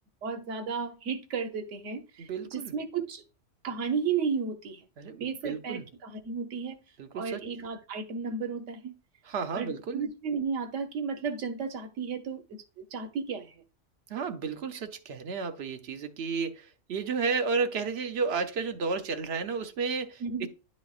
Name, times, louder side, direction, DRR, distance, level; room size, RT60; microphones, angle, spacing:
voice 1, 0.2-3.2 3.6-4.8 5.2-6.8 7.1-8.9 9.5-12.4 12.8-13.5 20.2-20.5, right 5 dB, 75° right, 1.2 m, -33 dB
voice 2, 2.2-2.7 5.0-5.9 7.0-7.4 9.3-10.0 14.1-20.5, right 5 dB, 60° right, 0.9 m, -32 dB
11.0 x 4.1 x 2.4 m
omnidirectional pair, 1.3 m